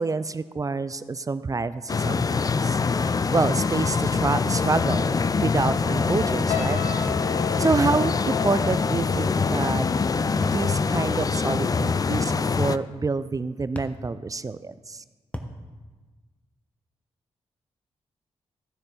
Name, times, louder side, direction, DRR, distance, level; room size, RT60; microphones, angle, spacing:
voice 1, 0.0-7.0 7.6-9.9 10.4-12.3 12.6-15.0, right 4 dB, 30° right, 14 dB, 0.4 m, -27 dB
sound 1, 1.9-12.8, left 5 dB, 30° left, 0.4 m, -24 dB
sound 2, 5.6-5.8 7.1-7.3 8.7-9.0 10.4-10.7 12.1-12.4 13.8-14.0 15.3-15.6, left 1 dB, 10° left, 1.0 m, -35 dB
sound 3, 6.5-11.8 12.1-12.4, left 9 dB, 85° left, 0.6 m, -36 dB
14.5 x 6.5 x 3.9 m, 1.3 s
cardioid pair, 50°, 12 cm